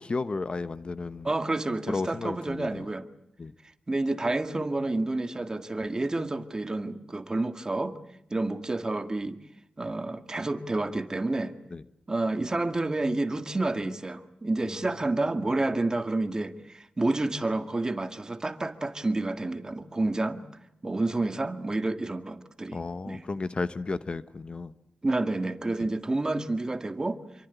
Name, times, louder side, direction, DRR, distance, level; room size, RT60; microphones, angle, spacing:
voice 1, 0.0-1.3 1.9-2.8 3.4-3.5 11.7-11.8 22.7-24.7, left 3 dB, 40° left, 1.0 m, -33 dB
voice 2, 1.2-3.1 3.9-8.0 8.3-9.4 9.8-11.5 12.1-20.4 20.8-22.8 23.1-23.2 25.0-27.2, right 2 dB, 25° right, 1.9 m, -29 dB
28.0 x 24.0 x 8.2 m
wide cardioid pair, 105°, 3 cm